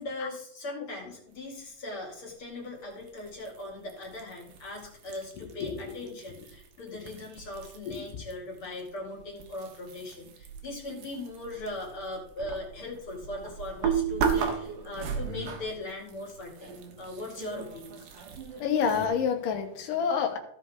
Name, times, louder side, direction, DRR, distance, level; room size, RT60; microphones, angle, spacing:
voice 1, 0.0-18.1, left 2 dB, 45° left, -1 dB, 3.1 m, -39 dB
sound 1, 3.0-8.3 8.6-19.1, right 7 dB, 85° right, 2.8 m, -36 dB
voice 2, 7.9-8.2 18.6-20.4, left 7 dB, 90° left, 5 dB, 2.8 m, -28 dB
16.0 x 5.5 x 3.5 m, 0.68 s
omnidirectional pair, 3.7 m